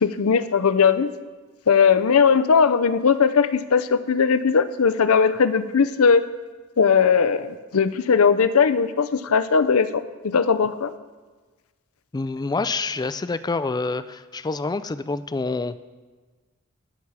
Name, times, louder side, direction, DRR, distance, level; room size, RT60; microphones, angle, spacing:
voice 1, 0.0-1.1 1.7-6.2 6.8-10.9, left 6 dB, 80° left, 14 dB, 0.6 m, -19 dB
voice 2, 12.1-15.8, left 3 dB, 20° left, 14 dB, 0.4 m, -27 dB
19.0 x 7.2 x 4.8 m, 1.3 s
head